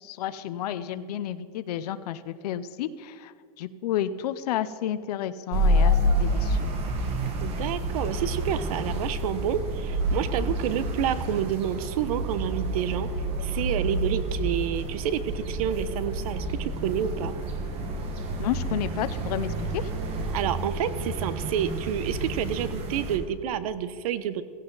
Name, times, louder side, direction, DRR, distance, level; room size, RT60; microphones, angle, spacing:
voice 1, 0.0-6.7 18.4-19.9, left 11 dB, 80° left, 12 dB, 0.7 m, -31 dB
sound 1, 5.5-23.2, right 1 dB, 30° right, 1.5 m, -29 dB
voice 2, 7.4-13.1 13.4-17.4 20.3-24.4, right 9 dB, 65° right, 14 dB, 0.9 m, -29 dB
16.5 x 15.0 x 4.0 m, 2.4 s
supercardioid pair, 175°, 20 cm